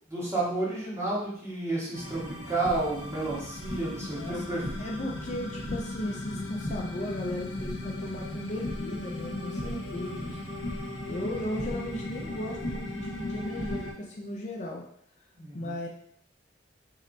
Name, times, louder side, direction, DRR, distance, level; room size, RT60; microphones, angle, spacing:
voice 1, 0.1-4.6 15.3-15.8, right 2 dB, 15° right, -7 dB, 1.3 m, -31 dB
sound 1, 1.9-13.9, left 1 dB, 85° left, 0.8 m, -36 dB
voice 2, 4.1-4.4 4.8-10.4 11.1-14.8 15.5-15.9, left 1 dB, 40° left, -1 dB, 0.5 m, -36 dB
3.1 x 2.8 x 3.9 m, 0.64 s
head